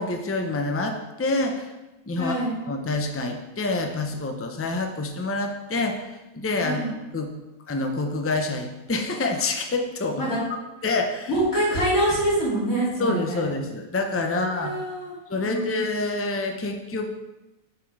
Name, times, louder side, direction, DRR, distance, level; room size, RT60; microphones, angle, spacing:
voice 1, 0.0-1.7 2.1-2.3 2.7-6.8 7.1-7.3 7.7-10.2 10.8-11.3 13.0-14.7 15.3-17.2, left 2 dB, 20° left, 4 dB, 0.4 m, -27 dB
voice 2, 2.2-2.5 6.6-7.0 10.2-10.4 11.3-13.4 14.3-15.1 15.4-15.8, right 1 dB, 70° left, -7 dB, 3.2 m, -25 dB
6.5 x 6.0 x 4.7 m, 1.0 s
omnidirectional pair, 1.5 m